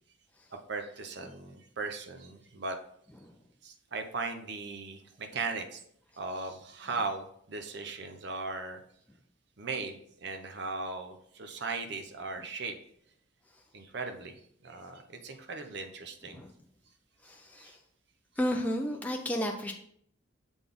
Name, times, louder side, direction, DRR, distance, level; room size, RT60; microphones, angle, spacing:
voice 1, 0.7-2.8 3.6-5.8 6.2-8.8 9.6-12.8 13.7-14.4 14.6-16.4 17.6-17.7, right 3 dB, 55° right, 6 dB, 0.7 m, -38 dB
voice 2, 17.2-17.8 18.4-19.7, equal, 5° left, 2 dB, 0.4 m, -32 dB
7.0 x 4.0 x 3.5 m, 0.66 s
head